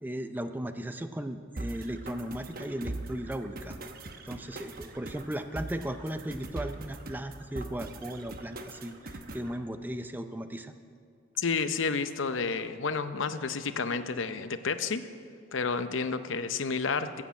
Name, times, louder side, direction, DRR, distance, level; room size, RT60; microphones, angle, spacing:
voice 1, 0.0-3.8 4.3-10.7, right 1 dB, 10° right, 8 dB, 0.4 m, -36 dB
sound 1, 1.6-9.5, right 2 dB, 50° right, 0.9 m, -41 dB
voice 2, 11.4-15.0 15.5-17.2, left 5 dB, 75° left, 11 dB, 0.7 m, -30 dB
14.5 x 7.8 x 8.4 m, 2.3 s
head